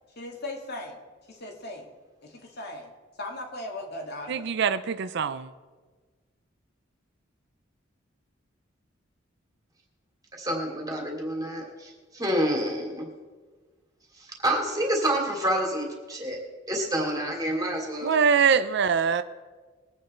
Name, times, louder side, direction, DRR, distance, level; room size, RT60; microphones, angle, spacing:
voice 1, 0.2-1.0 1.3-1.9 2.2-2.9 3.2-4.5, left 1 dB, 55° left, 2.2 m, -38 dB
voice 2, 4.3-5.5 18.0-19.2, right 6 dB, 60° right, 0.5 m, -23 dB
voice 3, 10.4-13.0 14.4-16.4 16.7-18.1, right 1 dB, 20° right, 2.8 m, -28 dB
21.5 x 8.8 x 4.4 m
head